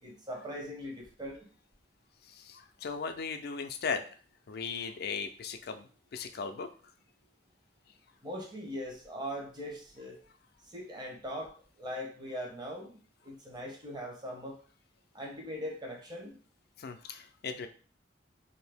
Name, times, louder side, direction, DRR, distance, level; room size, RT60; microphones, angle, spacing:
voice 1, 0.0-1.4 8.2-10.2 10.7-13.0 13.2-14.6 15.1-16.3, equal, 25° right, 0 dB, 0.8 m, -40 dB
voice 2, 2.2-4.1 4.5-6.7 16.8-17.7, left 5 dB, 60° left, 8 dB, 0.4 m, -37 dB
2.8 x 2.6 x 3.4 m, 0.41 s
head